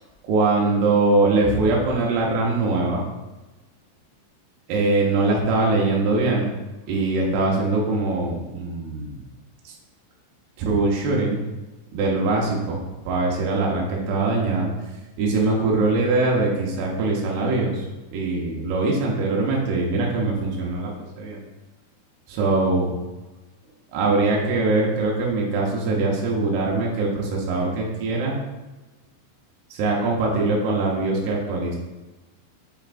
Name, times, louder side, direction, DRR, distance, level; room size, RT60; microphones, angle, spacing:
voice 1, 0.2-3.1 4.7-6.5 6.9-9.2 9.6-9.7 10.6-11.4 11.9-14.7 15.2-17.8 18.1-21.4 22.3-23.0 23.9-28.4 29.7-31.8, right 3 dB, 75° right, -3 dB, 2.6 m, -22 dB
7.2 x 5.6 x 2.5 m, 1.1 s
omnidirectional pair, 5.2 m